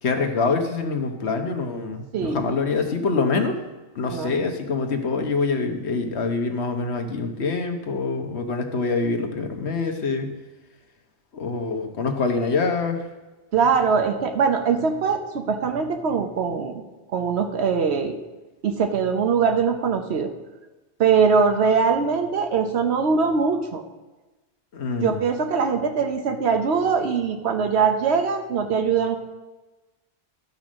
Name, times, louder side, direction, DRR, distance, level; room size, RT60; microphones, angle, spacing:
voice 1, 0.0-3.5 3.9-10.3 11.3-13.1 24.7-25.2, left 4 dB, 90° left, 5 dB, 1.4 m, -25 dB
voice 2, 13.5-16.8 17.1-18.2 18.6-20.3 21.0-23.8 25.0-29.2, right 5 dB, 80° right, 5 dB, 1.1 m, -22 dB
12.0 x 5.5 x 6.2 m, 1.1 s
omnidirectional pair, 1.1 m